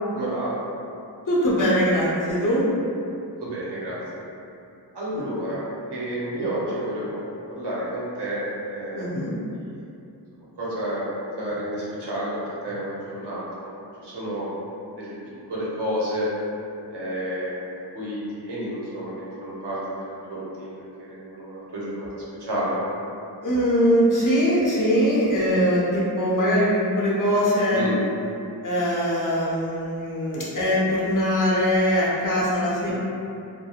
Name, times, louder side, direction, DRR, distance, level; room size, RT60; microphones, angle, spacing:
voice 1, 0.1-0.5 3.4-4.0 4.9-5.6 5.9-8.4 8.7-9.1 9.5-9.8 10.6-13.8 14.0-14.5 15.0-15.1 15.5-16.3 16.9-17.5 17.9-22.8 27.7-28.0, right 1 dB, 70° right, -7 dB, 0.8 m, -30 dB
voice 2, 1.3-2.6 5.1-5.2 8.9-9.3 23.4-27.8 28.6-32.9, equal, 50° left, -7 dB, 0.7 m, -22 dB
2.7 x 2.0 x 2.3 m, 2.7 s
wide cardioid pair, 55°, 42 cm